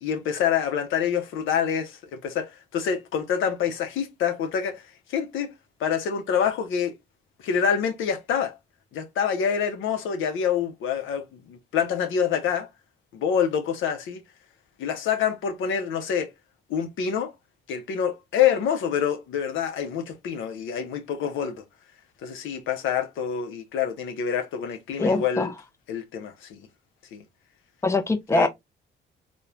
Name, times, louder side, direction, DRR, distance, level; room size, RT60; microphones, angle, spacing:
voice 1, 0.0-5.5 5.8-6.9 7.4-8.6 8.9-12.7 13.1-14.2 14.8-16.3 16.7-17.3 17.7-21.6 22.2-25.5 25.9-26.7 27.1-27.2 28.3-28.5, left 8 dB, 80° left, 0.5 m, -26 dB
voice 2, 25.0-25.5 27.8-28.5, left 3 dB, 15° left, 0.4 m, -22 dB
3.0 x 2.1 x 2.3 m
cardioid pair, 90°, 20 cm